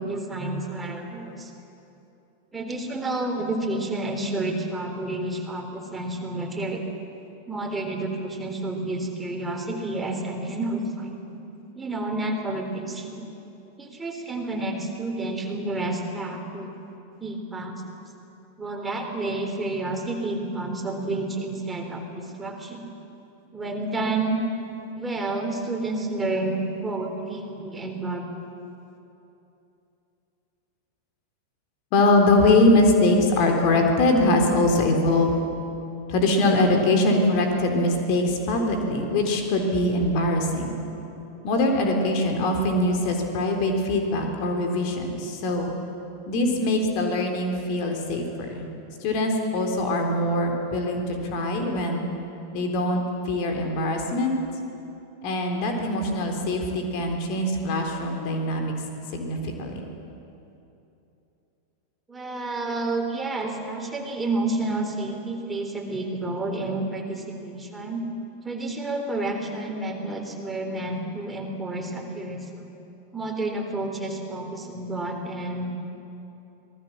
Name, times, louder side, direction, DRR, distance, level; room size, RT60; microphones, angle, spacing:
voice 1, 0.0-1.5 2.5-6.8 7.5-11.5 11.7-13.2 13.8-16.7 17.2-17.9 18.6-22.9 23.5-24.4 24.9-28.2 62.1-68.0 68.4-72.7 73.1-75.7, right 2 dB, 10° right, 2 dB, 3.8 m, -30 dB
voice 2, 31.9-35.3 36.1-40.8 41.4-45.7 46.3-48.7 49.0-52.0 52.5-54.4 55.2-58.7 59.1-59.8, left 2 dB, 45° left, 3 dB, 3.8 m, -22 dB
26.5 x 19.5 x 7.5 m, 2.9 s
figure-of-eight pair, 90°, 0 cm